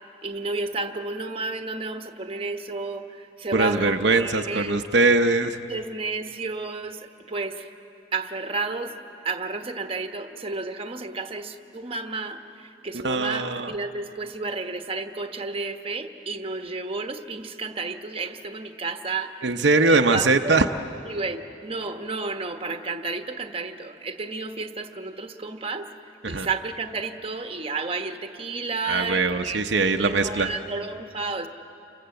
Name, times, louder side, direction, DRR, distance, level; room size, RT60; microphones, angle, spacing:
voice 1, 0.2-4.8 5.7-7.0 7.3-7.6 8.1-9.0 9.2-12.4 12.8-19.4 19.9-20.6 21.0-25.9 26.3-29.6 29.9-31.5, right 3 dB, 30° right, 6 dB, 1.2 m, -31 dB
voice 2, 3.5-5.6 13.0-13.7 19.4-20.7 26.2-26.5 28.9-30.5, right 3 dB, 70° right, 5 dB, 0.8 m, -21 dB
29.0 x 25.0 x 7.8 m, 2.8 s
head